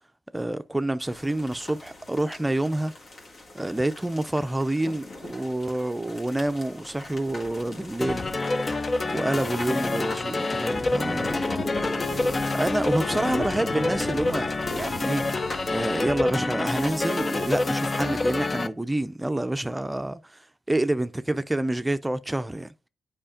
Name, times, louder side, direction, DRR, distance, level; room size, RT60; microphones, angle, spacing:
voice 1, 0.3-2.9 3.5-8.3 9.1-11.4 12.5-22.9, right 1 dB, 15° right, 0.5 m, -28 dB
sound 1, 1.0-16.0, left 1 dB, 60° left, 1.9 m, -39 dB
sound 2, 8.0-18.7, left 2 dB, 40° left, 0.5 m, -27 dB
8.7 x 5.0 x 2.4 m
hypercardioid pair, 40°, 0 cm